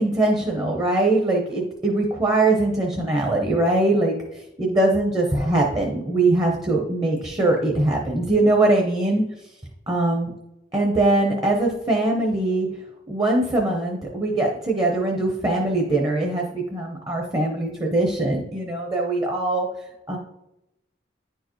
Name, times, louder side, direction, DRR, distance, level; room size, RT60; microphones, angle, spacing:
voice 1, 0.0-9.2 9.9-10.3 10.7-12.7 13.1-19.7 20.1-20.2, right 2 dB, 20° right, 0 dB, 0.8 m, -22 dB
10.0 x 4.6 x 3.1 m, 0.86 s
head